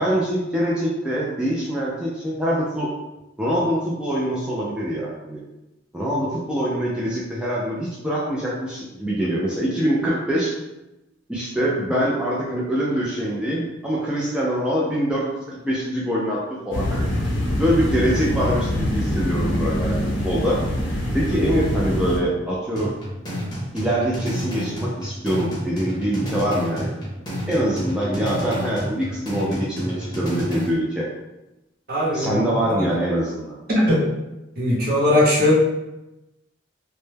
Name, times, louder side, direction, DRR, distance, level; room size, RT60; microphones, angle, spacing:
voice 1, 0.0-2.9 3.4-5.4 5.9-10.5 11.3-17.1 17.6-20.0 20.2-20.6 21.1-22.9 23.7-26.9 27.5-31.1 32.1-33.6, equal, 5° right, -6 dB, 0.3 m, -24 dB
sound 1, 16.7-22.2, equal, 90° left, 0.7 m, -24 dB
sound 2, 22.8-30.8, equal, 20° left, 0.7 m, -30 dB
voice 2, 31.9-32.4 32.8-32.9 33.7-34.0 34.6-35.5, left 1 dB, 55° right, -5 dB, 0.8 m, -19 dB
2.1 x 2.1 x 3.2 m, 0.97 s
head